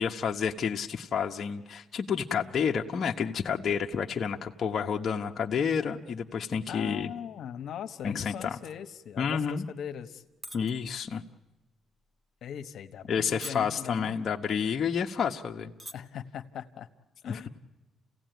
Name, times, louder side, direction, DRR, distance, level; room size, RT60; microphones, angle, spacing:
voice 1, 0.0-7.1 8.0-8.6 9.2-9.6 10.5-11.2 13.1-15.7, left 6 dB, 50° left, 1 dB, 1.1 m, -30 dB
voice 2, 6.7-10.2 12.4-14.2 15.9-16.9 17.2-17.5, left 9 dB, 70° left, 7 dB, 1.3 m, -40 dB
sound 1, 10.4-10.7 11.1-11.4 12.0-12.2 12.9-13.1 13.4-13.9 14.6-14.7 15.0-15.1 15.6-15.9 16.3-16.5, right 1 dB, 20° right, 1.5 m, -42 dB
29.0 x 16.5 x 9.3 m, 1.1 s
cardioid pair, 90°, 0 cm